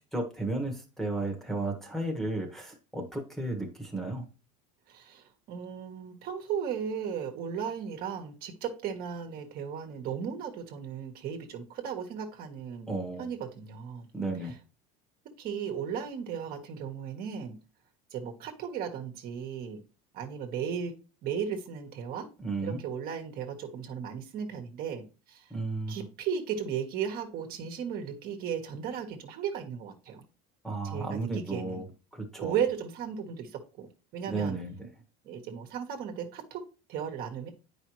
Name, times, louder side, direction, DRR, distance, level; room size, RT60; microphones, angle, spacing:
voice 1, 0.1-4.3 12.9-13.3 14.1-14.5 22.4-22.8 25.5-26.0 30.6-31.8 32.1-32.6 34.3-34.9, right 2 dB, ahead, 1.3 m, -33 dB
voice 2, 4.9-12.9 13.2-14.1 15.4-17.6 18.1-19.8 20.1-20.9 21.2-22.3 22.6-25.5 25.9-30.2 30.8-31.8 32.4-34.6 35.2-36.6 36.9-37.5, right 7 dB, 50° right, 1.3 m, -35 dB
9.0 x 5.0 x 3.1 m
cardioid pair, 135°, 20 cm